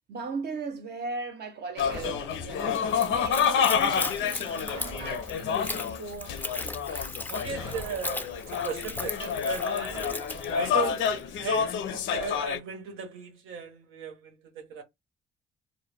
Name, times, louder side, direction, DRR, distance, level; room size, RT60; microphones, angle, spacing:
voice 1, 0.1-6.8 9.9-10.1, right 4 dB, 55° right, 0.6 m, -38 dB
sound 1, 1.8-12.6, left 7 dB, 75° left, 0.5 m, -29 dB
sound 2, 1.8-2.9 4.6-5.8 7.5-8.7 9.8-11.0, right 3 dB, 15° right, 0.7 m, -46 dB
Splash splatter / Trickle dribble, 2.9-11.2, left 2 dB, 10° left, 0.3 m, -38 dB
voice 2, 7.3-10.0 10.5-14.8, right 6 dB, 90° right, 0.8 m, -37 dB
2.1 x 2.0 x 3.2 m
cardioid pair, 90°, 20 cm